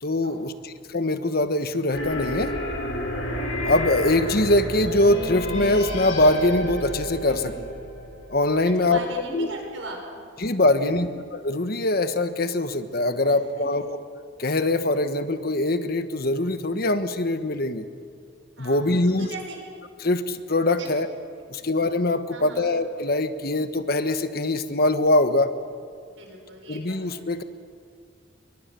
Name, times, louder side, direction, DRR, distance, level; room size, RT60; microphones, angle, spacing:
voice 1, 0.0-2.5 3.6-7.5 8.3-9.0 9.3-9.5 10.4-11.1 11.4-14.0 14.4-17.8 18.6-19.3 20.0-21.1 21.5-25.5 26.7-27.4, left 2 dB, 50° left, 10 dB, 1.2 m, -23 dB
sound 1, 1.9-8.7, left 1 dB, 80° left, 6.4 m, -30 dB
voice 2, 7.3-7.7 8.8-10.0 10.9-11.0 13.3-13.7 18.6-19.6 20.8-20.9 21.5-21.7 22.3-22.7 26.2-27.2, right 2 dB, 80° right, 1 dB, 6.7 m, -39 dB
28.5 x 24.0 x 6.9 m, 2.2 s
head